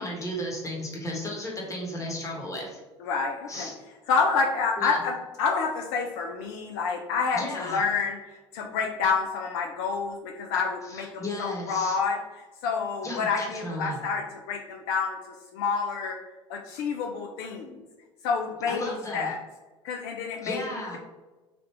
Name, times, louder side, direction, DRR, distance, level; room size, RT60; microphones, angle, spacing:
voice 1, 0.0-2.8 3.5-3.7 4.8-5.0 7.3-7.8 10.8-12.0 13.0-14.0 18.6-19.3 20.4-21.0, left 1 dB, 20° left, -2 dB, 1.1 m, -34 dB
voice 2, 3.0-3.7 4.1-8.2 8.5-12.2 12.6-15.2 15.5-16.2 16.5-17.8 18.2-19.4 19.8-21.0, left 5 dB, 65° left, 1 dB, 0.4 m, -28 dB
3.3 x 2.4 x 3.0 m, 1.2 s
hypercardioid pair, 70°, 15 cm